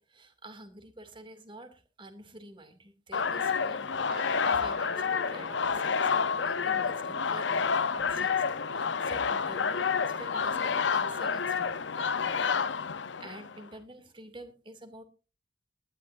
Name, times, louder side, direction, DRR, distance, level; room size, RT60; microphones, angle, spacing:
voice 1, 0.0-3.9 4.2-8.4 8.7-12.5 12.9-15.0, right 1 dB, 25° right, 8 dB, 2.5 m, -49 dB
sound 1, 3.1-13.6, left 5 dB, 80° left, 0.8 m, -29 dB
Guitar, 4.1-12.9, right 2 dB, 50° right, 2.3 m, -50 dB
19.5 x 13.0 x 2.6 m, 0.34 s
head